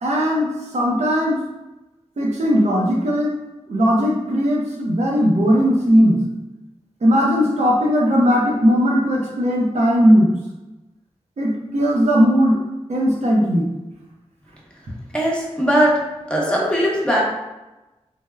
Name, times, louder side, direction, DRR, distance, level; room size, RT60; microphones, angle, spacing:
voice 1, 0.0-1.4 2.2-3.3 3.7-6.3 7.0-10.4 11.4-12.6 12.9-13.7, equal, 70° right, -3 dB, 0.6 m, -18 dB
voice 2, 15.1-15.9 16.3-17.2, equal, 10° left, -4 dB, 0.8 m, -19 dB
3.3 x 2.0 x 2.2 m, 1.0 s
cardioid pair, 40°, 12 cm